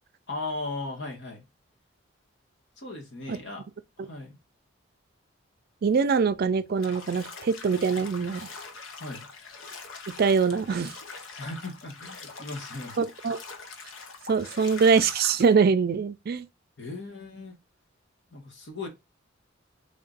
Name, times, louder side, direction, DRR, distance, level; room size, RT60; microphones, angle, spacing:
voice 1, 0.3-1.4 2.8-3.6 4.0-4.4 9.0-9.3 11.4-13.1 16.8-17.5 18.3-18.9, left 2 dB, 60° left, 1.4 m, -37 dB
voice 2, 5.8-8.5 10.2-10.9 13.0-13.4 14.3-16.5, right 5 dB, 50° right, 0.4 m, -23 dB
Bathtub (filling or washing), 6.8-15.5, left 4 dB, 80° left, 0.7 m, -43 dB
3.6 x 2.5 x 3.8 m
head